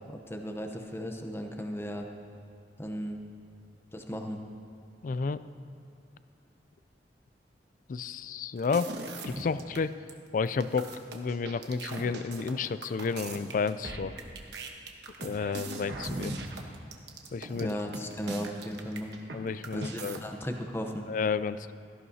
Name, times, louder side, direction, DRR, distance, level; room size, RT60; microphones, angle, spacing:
voice 1, 0.1-2.1 2.8-3.2 3.9-4.4 17.6-19.2 19.7-21.1, equal, 15° left, 3 dB, 0.8 m, -36 dB
voice 2, 5.0-5.4 7.9-8.9 9.2-9.9 10.3-14.1 15.2-16.4 17.3-17.8 19.3-20.2 21.1-21.7, left 5 dB, 50° left, 15 dB, 0.3 m, -31 dB
sound 1, 8.6-9.8 10.1-10.2 10.5-19.4 19.6-20.2, right 2 dB, 70° right, 1.1 m, -39 dB
17.0 x 14.0 x 2.8 m, 2.7 s
head